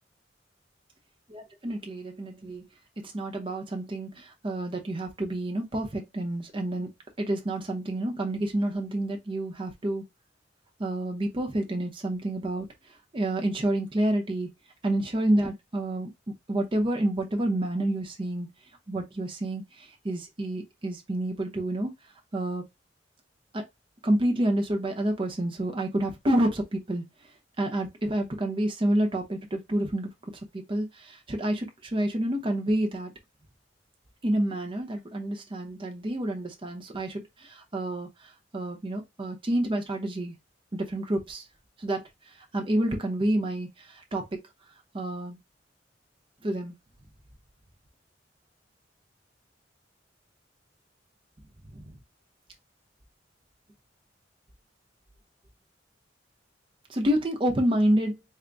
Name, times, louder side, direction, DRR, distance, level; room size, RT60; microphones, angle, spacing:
voice 1, 1.3-2.7 3.0-6.9 7.2-10.0 10.8-12.7 13.1-14.5 14.8-18.5 18.9-21.9 22.3-22.6 23.5-23.6 24.0-27.0 27.6-30.1 30.5-33.1 34.2-38.1 38.5-40.3 40.7-41.4 41.8-42.0 42.5-44.3 44.9-45.4 46.4-46.7 51.7-51.9 56.9-58.2, right 1 dB, 30° right, 0.7 m, -28 dB
3.9 x 2.1 x 3.4 m
head